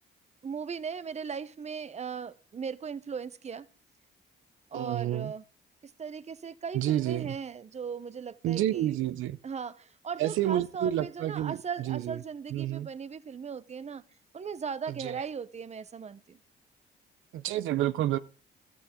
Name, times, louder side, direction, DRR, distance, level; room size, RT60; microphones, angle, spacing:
voice 1, 0.4-3.7 4.7-5.4 6.0-8.9 9.4-14.0 14.3-16.4, right 6 dB, 35° right, 0.9 m, -38 dB
voice 2, 4.7-5.3 6.7-7.4 8.4-9.4 10.2-12.2 12.5-12.9 14.9-15.2 17.3-18.2, right 13 dB, 80° right, 0.6 m, -29 dB
15.0 x 13.0 x 3.7 m
cardioid pair, 90°, 20 cm